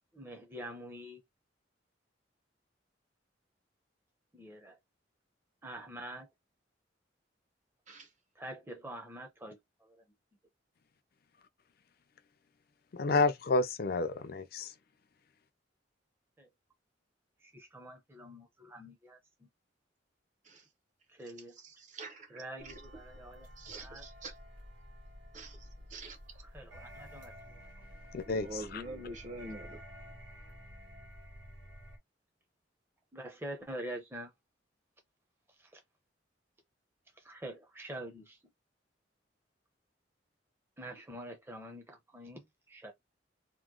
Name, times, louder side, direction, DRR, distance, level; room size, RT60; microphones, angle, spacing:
voice 1, 0.1-1.2 4.3-4.8 5.6-6.3 8.4-10.0 16.4-16.5 17.4-19.5 21.1-21.6 22.3-23.5 23.8-24.1 26.4-27.6 33.1-34.3 35.6-35.8 37.1-38.4 40.8-42.9, right 1 dB, 10° right, 0.7 m, -46 dB
voice 2, 12.9-14.7 28.1-28.8, left 3 dB, 55° left, 0.5 m, -30 dB
voice 3, 21.6-22.7 23.6-24.3 25.3-26.2 28.3-29.8, right 2 dB, 40° right, 0.9 m, -46 dB
sound 1, 22.6-32.0, equal, 85° right, 1.6 m, -51 dB
3.0 x 2.1 x 3.7 m
head